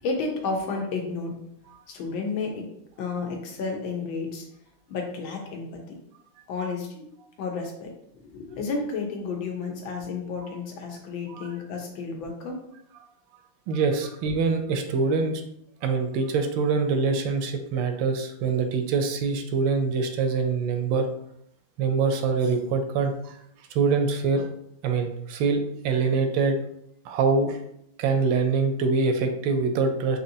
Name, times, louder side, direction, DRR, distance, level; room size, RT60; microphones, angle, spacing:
voice 1, 0.0-1.4 1.9-2.7 3.0-4.4 4.9-6.0 6.5-7.1 7.4-12.6, left 4 dB, 85° left, 2 dB, 1.6 m, -32 dB
voice 2, 13.7-15.4 15.8-21.1 21.8-23.3 23.7-24.5 24.8-26.6 27.0-27.6 28.0-30.2, right 4 dB, 80° right, 6 dB, 1.3 m, -24 dB
4.3 x 2.8 x 2.6 m, 0.74 s
omnidirectional pair, 2.1 m